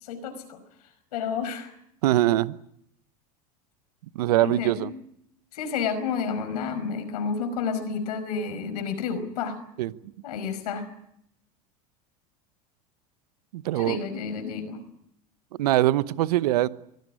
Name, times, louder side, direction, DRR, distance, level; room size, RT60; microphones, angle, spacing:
voice 1, 0.1-0.6 1.1-1.7 4.4-4.9 5.5-9.6 10.2-10.9 13.8-14.8, left 6 dB, 80° left, 9 dB, 5.3 m, -30 dB
voice 2, 2.0-2.6 4.1-4.9 9.8-9.9 13.5-14.0 15.6-16.7, right 15 dB, 80° right, 16 dB, 1.0 m, -22 dB
24.0 x 16.0 x 9.8 m, 0.73 s
hypercardioid pair, 95°, 20 cm